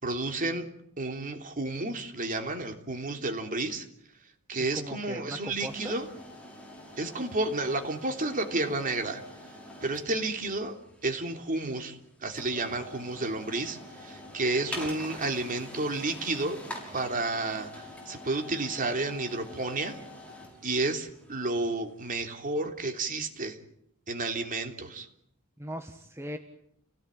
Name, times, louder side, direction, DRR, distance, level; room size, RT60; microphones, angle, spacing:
voice 1, 0.0-0.7 1.0-3.9 4.5-6.1 7.0-9.2 9.8-10.8 11.0-16.6 16.9-20.0 20.6-23.6 24.1-25.1, right 2 dB, 40° right, 5 dB, 3.3 m, -31 dB
voice 2, 4.7-6.0 25.6-26.4, equal, 10° right, 5 dB, 1.5 m, -39 dB
sound 1, 5.6-22.4, left 1 dB, 5° left, 6.6 m, -46 dB
29.5 x 18.0 x 9.0 m, 0.72 s
head